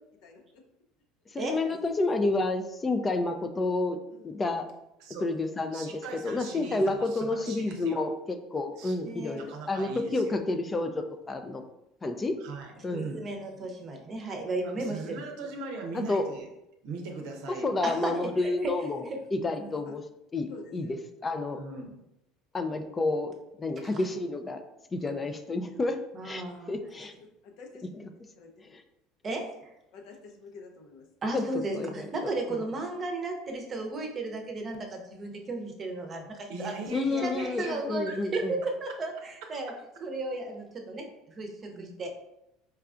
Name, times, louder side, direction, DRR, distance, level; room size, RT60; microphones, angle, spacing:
voice 1, 0.2-0.6 4.1-4.4 11.5-11.6 12.8-13.1 19.9-20.0 20.5-21.0 27.4-28.0 28.4-28.7 29.9-31.1, left 4 dB, 65° left, 2 dB, 0.6 m, -50 dB
voice 2, 1.3-4.0 4.2-4.7 5.2-11.6 12.0-12.4 12.8-13.1 15.9-16.3 17.5-20.0 20.3-21.0 21.2-21.6 22.5-24.6 24.9-26.0 26.2-27.1 28.7-28.8 31.3-31.4 31.7-32.6 36.9-38.6, left 2 dB, 25° left, 6 dB, 0.4 m, -30 dB
voice 3, 5.7-8.1 8.8-8.9 9.3-10.4 12.4-13.2 14.8-16.5 16.8-17.8 21.6-21.9 36.5-37.8 38.1-38.2 41.7-41.9, right 3 dB, 70° right, 2 dB, 0.6 m, -40 dB
voice 4, 9.0-9.4 12.9-15.2 17.8-18.7 19.0-19.2 26.1-26.8 29.2-29.7 31.2-39.7 40.0-42.1, right 2 dB, 35° right, 2 dB, 0.7 m, -34 dB
4.5 x 2.3 x 2.4 m, 0.85 s
hypercardioid pair, 85°, 0 cm